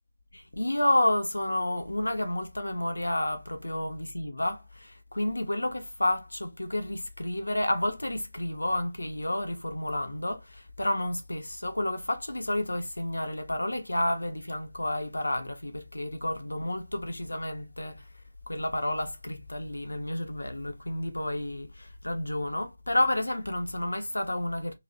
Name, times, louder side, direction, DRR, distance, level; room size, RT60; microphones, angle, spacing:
voice 1, 0.3-18.1 18.5-24.7, left 1 dB, 75° left, 0.6 m, -30 dB
2.5 x 2.0 x 2.4 m
figure-of-eight pair, 160°, 0 cm